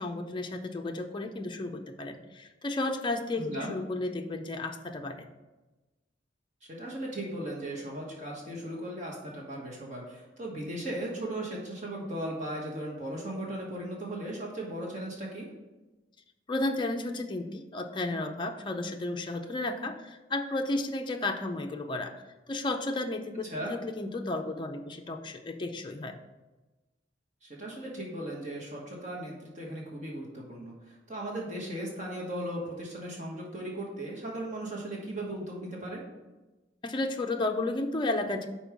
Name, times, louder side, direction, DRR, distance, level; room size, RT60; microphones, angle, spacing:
voice 1, 0.0-5.3 16.5-22.1 22.5-26.2 36.8-38.5, left 2 dB, 25° left, 4 dB, 0.4 m, -33 dB
voice 2, 3.4-3.7 6.7-15.5 23.4-23.7 27.4-36.1, right 1 dB, 40° right, -2 dB, 1.3 m, -37 dB
5.4 x 4.3 x 6.0 m, 1.1 s
head